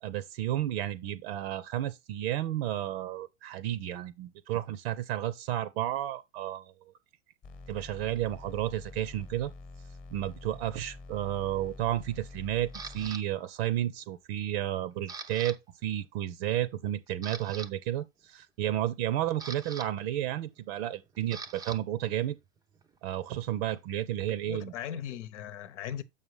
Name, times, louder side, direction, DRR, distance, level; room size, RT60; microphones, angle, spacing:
voice 1, 0.0-6.7 7.7-9.5 10.1-22.4 23.0-24.7, right 12 dB, 55° right, 0.7 m, -32 dB
sound 1, 7.4-13.1, left 3 dB, 20° left, 1.1 m, -47 dB
Camera, 12.7-13.2 13.8-14.1 14.5-15.6 15.8-16.0 16.6-16.7 17.1-17.7 18.9-21.8 22.1-24.7, right 4 dB, 10° right, 0.5 m, -45 dB
voice 2, 24.3-26.0, left 10 dB, 70° left, 1.0 m, -38 dB
6.8 x 5.6 x 3.2 m
hypercardioid pair, 115°, 37 cm